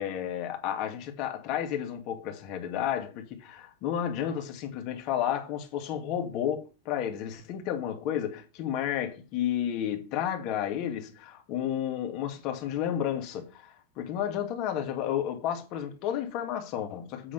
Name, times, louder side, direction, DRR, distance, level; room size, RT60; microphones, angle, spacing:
voice 1, 0.0-17.3, left 10 dB, 50° left, 2.4 m, -32 dB
8.6 x 3.8 x 6.8 m
hypercardioid pair, 120°, 0 cm